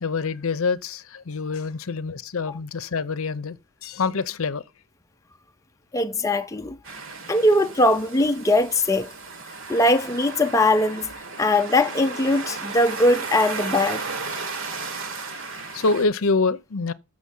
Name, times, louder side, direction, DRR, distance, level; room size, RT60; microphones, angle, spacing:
voice 1, 0.0-4.6 15.5-16.9, left 4 dB, 70° left, 0.7 m, -26 dB
voice 2, 5.9-6.8 7.3-9.1 9.7-11.1 11.4-14.1, left 1 dB, 15° left, 0.5 m, -20 dB
sound 1, 6.8-16.1, right 4 dB, 60° right, 1.5 m, -34 dB
7.5 x 6.3 x 5.4 m
head